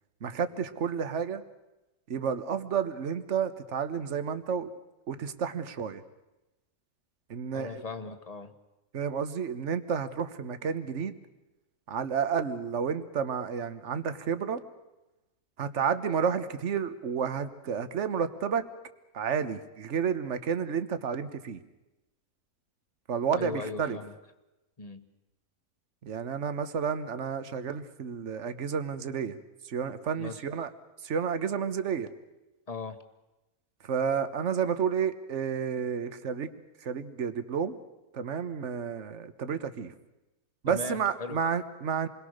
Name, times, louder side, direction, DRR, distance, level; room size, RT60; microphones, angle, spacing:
voice 1, 0.2-1.4 2.1-4.7 5.1-6.0 7.3-7.8 8.9-11.1 11.9-14.6 15.6-18.7 19.1-21.6 23.1-24.0 26.0-29.3 29.6-30.7 31.0-32.1 33.8-36.5 36.8-37.8 38.1-39.9 40.6-42.1, right 7 dB, 55° right, 11 dB, 1.5 m, -31 dB
voice 2, 7.5-8.5 23.4-24.1 24.8-25.1 30.2-30.4 32.7-33.0 40.7-41.4, left 3 dB, 25° left, 9 dB, 1.4 m, -38 dB
28.0 x 22.0 x 6.6 m, 1.0 s
omnidirectional pair, 1.6 m